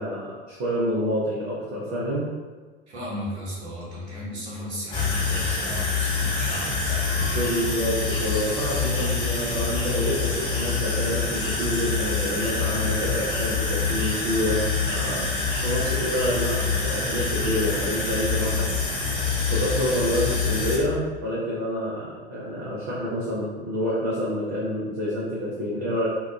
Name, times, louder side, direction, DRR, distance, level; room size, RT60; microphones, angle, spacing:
voice 1, 0.0-2.3 7.3-15.2 15.6-18.7 19.5-26.1, equal, 40° right, -7 dB, 0.6 m, -28 dB
voice 2, 2.9-7.8, equal, 80° right, -7 dB, 0.9 m, -35 dB
sound 1, 4.9-20.8, left 4 dB, 15° left, 0.6 m, -26 dB
2.7 x 2.3 x 2.3 m, 1.4 s
figure-of-eight pair, 80°, 33 cm